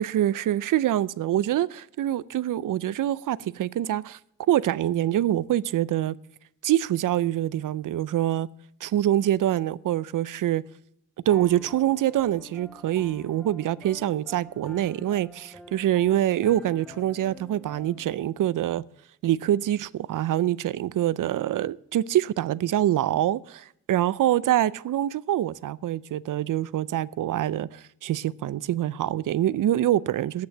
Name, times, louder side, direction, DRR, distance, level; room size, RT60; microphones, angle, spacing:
voice 1, 0.0-4.2 4.5-6.2 6.6-8.5 8.8-10.6 11.3-18.8 19.2-30.5, right 12 dB, 85° right, 0.5 m, -25 dB
Piano, 11.3-18.1, left 2 dB, 5° left, 0.6 m, -48 dB
10.5 x 8.5 x 6.2 m
wide cardioid pair, 115°, 31 cm